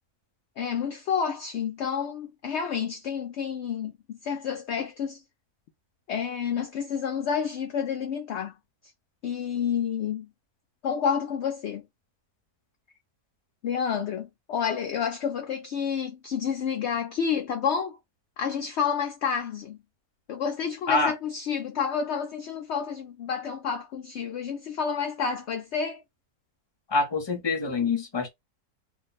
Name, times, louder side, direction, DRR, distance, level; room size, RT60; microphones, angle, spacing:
voice 1, 0.6-5.2 6.1-8.6 9.2-10.3 10.8-11.9 13.6-18.0 18.4-19.8 20.3-26.0, left 7 dB, 70° left, 0.6 m, -29 dB
voice 2, 26.9-28.3, left 3 dB, 20° left, 0.7 m, -25 dB
2.5 x 2.2 x 3.9 m
omnidirectional pair, 1.7 m